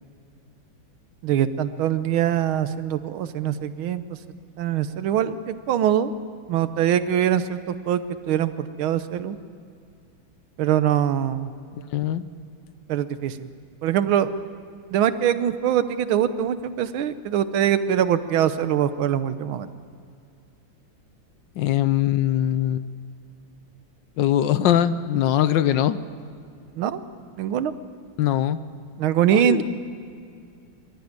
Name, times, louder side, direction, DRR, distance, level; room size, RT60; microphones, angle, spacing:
voice 1, 1.2-4.0 4.6-6.1 6.5-8.0 8.3-9.4 10.6-11.5 12.9-13.5 13.8-14.3 14.9-19.7 26.8-27.0 27.4-27.7 29.0-29.6, right 10 dB, 90° right, 12 dB, 1.7 m, -23 dB
voice 2, 11.9-12.2 21.6-22.8 24.2-26.0 28.2-28.6 29.3-29.6, left 11 dB, 70° left, 13 dB, 1.3 m, -21 dB
24.0 x 13.0 x 9.5 m, 2.4 s
omnidirectional pair, 2.2 m